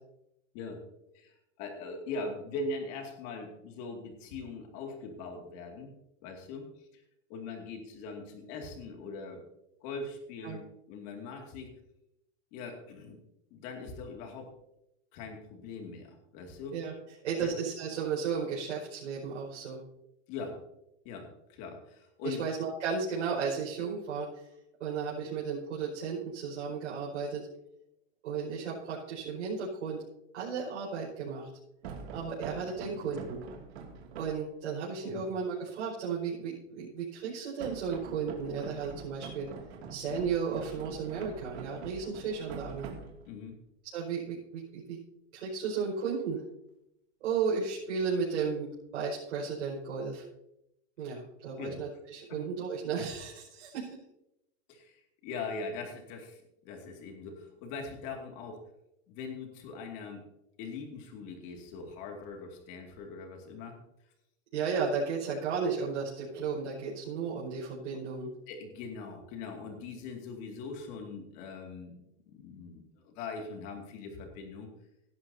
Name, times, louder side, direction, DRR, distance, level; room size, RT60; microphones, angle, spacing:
voice 1, 1.1-5.9 6.2-7.0 7.3-9.4 9.8-10.6 10.9-11.7 12.5-13.2 13.5-14.5 15.1-16.8 17.4-17.5 20.3-20.6 21.0-22.4 35.0-35.2 43.3-43.6 51.6-51.8 52.3-52.4 54.7-58.6 59.1-60.2 60.6-63.8 68.5-72.0 72.3-74.7, left 4 dB, 35° left, 3 dB, 2.4 m, -41 dB
voice 2, 17.2-19.8 22.2-24.5 24.8-27.5 28.2-30.0 30.3-31.5 32.1-33.4 34.1-39.5 39.9-42.9 43.9-45.0 45.3-46.4 47.2-50.2 51.0-53.9 64.5-68.3, right 5 dB, 80° right, -6 dB, 5.4 m, -34 dB
sound 1, 31.8-34.5 37.6-43.5, right 5 dB, 60° right, 2.6 m, -45 dB
17.5 x 12.0 x 2.8 m, 0.83 s
supercardioid pair, 170°, 36 cm